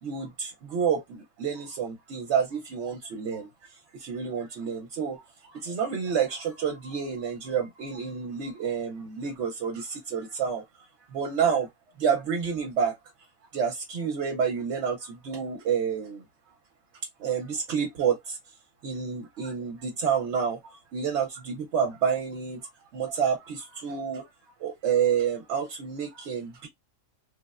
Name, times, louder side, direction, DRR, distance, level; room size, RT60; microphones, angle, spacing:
voice 1, 0.0-11.7 12.0-13.0 13.5-16.2 17.2-18.5 18.8-24.3 24.6-26.7, right 7 dB, 70° right, 0.9 m, -29 dB
3.3 x 2.0 x 2.3 m
omnidirectional pair, 1.3 m